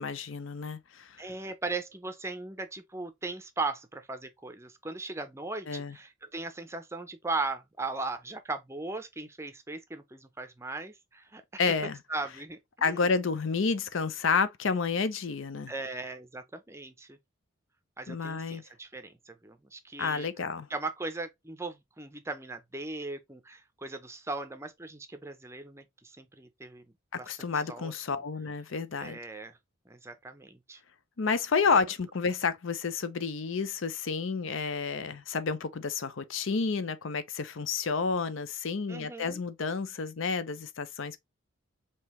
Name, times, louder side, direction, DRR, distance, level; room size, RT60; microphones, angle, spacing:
voice 1, 0.0-1.2 5.7-6.0 11.6-12.0 12.8-15.7 18.1-18.6 20.0-20.7 27.1-29.2 31.2-41.2, left 5 dB, 70° left, 0.6 m, -30 dB
voice 2, 1.2-11.6 12.1-13.1 15.7-17.2 18.0-20.3 20.7-26.8 27.2-27.9 29.0-29.6 29.9-30.8 38.9-39.4, right 3 dB, 15° right, 0.5 m, -38 dB
5.3 x 2.8 x 3.0 m
head